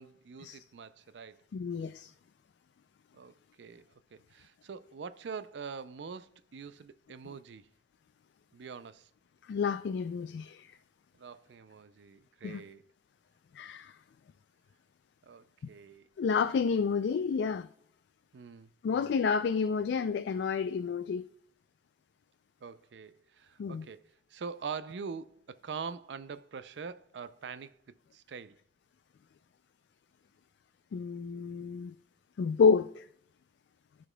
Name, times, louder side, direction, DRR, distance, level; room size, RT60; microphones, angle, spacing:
voice 1, 0.0-1.4 3.1-3.8 4.1-7.7 8.5-9.1 11.1-12.9 15.2-16.1 18.3-19.1 22.6-28.6, right 5 dB, 85° right, 0.4 m, -44 dB
voice 2, 1.5-2.1 9.5-10.7 12.4-12.6 13.5-14.0 16.2-17.7 18.8-21.3 23.6-23.8 30.9-32.0 32.4-33.0, left 5 dB, 75° left, 0.3 m, -29 dB
13.5 x 5.1 x 2.2 m
head